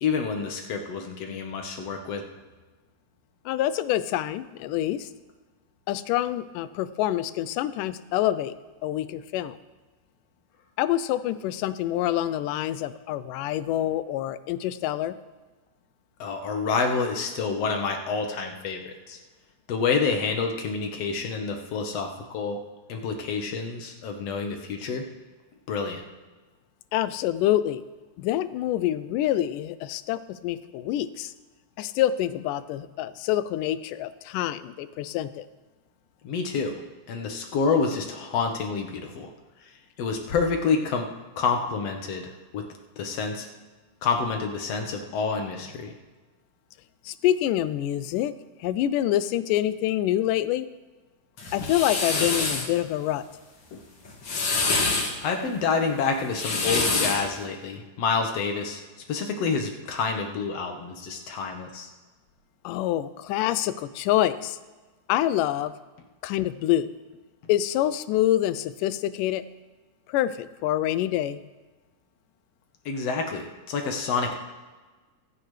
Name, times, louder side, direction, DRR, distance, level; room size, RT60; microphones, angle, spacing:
voice 1, 0.0-2.2 16.2-19.2 19.7-22.6 22.9-25.0 25.7-26.0 36.2-36.7 37.1-39.3 40.0-41.1 41.4-42.2 42.5-42.6 43.0-43.5 44.0-45.9 53.7-53.8 55.2-58.8 59.1-61.9 72.9-74.4, left 5 dB, 60° left, 3 dB, 2.1 m, -28 dB
voice 2, 3.5-5.1 5.9-8.5 8.8-9.6 10.8-15.2 26.9-27.8 28.2-31.3 31.8-35.5 47.1-48.3 48.6-50.7 51.5-53.2 62.6-64.6 65.1-65.7 66.2-66.9 67.5-69.4 70.1-71.4, left 13 dB, 90° left, 15 dB, 2.2 m, -26 dB
sound 1, 51.4-52.7 54.0-55.1 56.2-57.3, left 3 dB, 45° left, 2.1 m, -26 dB
24.5 x 8.6 x 3.3 m, 1.3 s
omnidirectional pair, 3.7 m